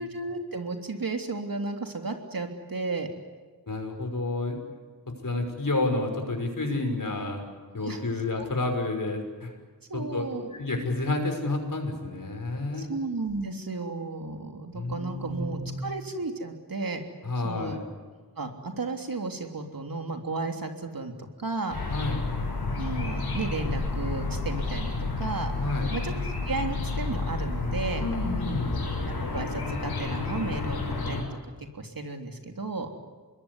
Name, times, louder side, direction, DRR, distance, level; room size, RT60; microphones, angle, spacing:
voice 1, 0.0-3.1 7.8-8.0 8.4-8.5 9.9-10.5 12.7-17.0 17.4-17.8 18.4-21.8 22.7-25.5 25.9-26.1 26.4-28.0 29.1-31.4 31.7-32.9, right 3 dB, 60° right, 4 dB, 3.3 m, -33 dB
voice 2, 3.7-4.6 5.2-7.4 7.7-9.5 9.9-10.3 10.5-12.9 14.7-15.8 17.2-17.8 21.9-22.3 25.6-26.0 27.9-28.8, left 2 dB, 55° left, 3 dB, 6.0 m, -30 dB
sound 1, 21.7-31.2, left 3 dB, 85° left, 6.5 m, -30 dB
26.0 x 21.5 x 10.0 m, 1.4 s
cardioid pair, 50°, 38 cm